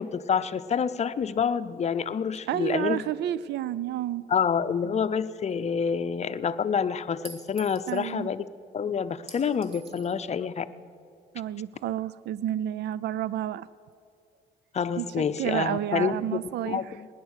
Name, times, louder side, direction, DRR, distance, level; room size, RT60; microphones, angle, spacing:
voice 1, 0.0-3.0 4.3-8.5 8.7-10.7 14.7-17.1, left 7 dB, 35° left, 12 dB, 0.7 m, -28 dB
voice 2, 2.5-4.2 7.9-8.3 11.3-13.7 15.0-16.8, right 12 dB, 65° right, 19 dB, 0.4 m, -30 dB
Chink clink, 5.5-5.6 7.3-8.1 9.3-10.2, right 3 dB, 30° right, 3.0 m, -47 dB
19.5 x 10.0 x 6.4 m, 2.5 s
cardioid pair, 90°, 19 cm